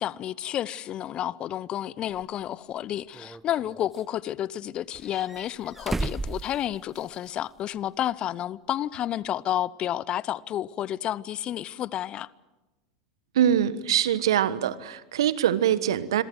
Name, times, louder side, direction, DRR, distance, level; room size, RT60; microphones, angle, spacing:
voice 1, 0.0-12.3, left 12 dB, 40° left, 0.8 m, -30 dB
sound 1, 2.1-2.2 3.1-4.0 4.9-7.3 7.6-7.7 9.3-9.4, right 2 dB, 10° right, 0.9 m, -35 dB
voice 2, 13.3-16.2, right 10 dB, 70° right, 1.3 m, -23 dB
27.5 x 23.0 x 7.8 m
hypercardioid pair, 85°, 3 cm